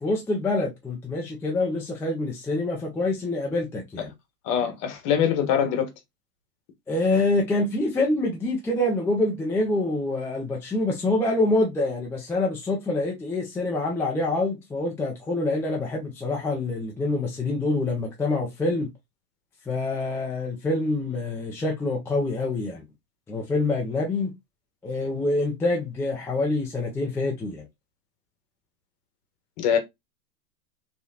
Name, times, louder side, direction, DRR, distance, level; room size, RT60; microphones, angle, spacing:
voice 1, 0.0-4.1 6.9-18.9 19.7-22.8 23.3-24.3 24.8-27.7, left 2 dB, 5° left, 0.4 m, -26 dB
voice 2, 4.4-5.9 29.6-29.8, left 8 dB, 45° left, 1.3 m, -23 dB
3.3 x 3.2 x 2.7 m
hypercardioid pair, 105°, 48 cm